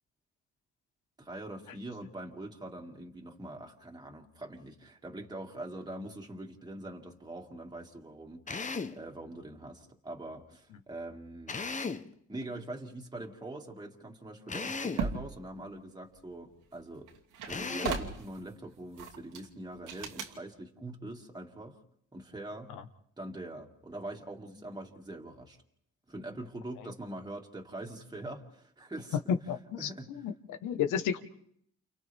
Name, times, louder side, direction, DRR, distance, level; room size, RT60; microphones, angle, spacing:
voice 1, 1.2-11.6 12.3-17.1 17.5-21.8 22.1-22.7 23.2-25.6 26.1-29.2 29.8-30.1, right 1 dB, 15° right, 0 dB, 2.3 m, -43 dB
Drill, 8.5-9.0 11.5-12.1 14.5-15.1 17.5-18.1, left 4 dB, 25° left, 1.0 m, -36 dB
sound 1, 14.6-15.3 16.7-16.8 17.1-18.4 19.0-19.5 19.9-20.3, right 5 dB, 90° right, 2.6 m, -36 dB
voice 2, 29.3-31.2, left 8 dB, 85° left, 9 dB, 1.4 m, -32 dB
29.5 x 28.5 x 3.6 m, 0.68 s
cardioid pair, 90°, 30 cm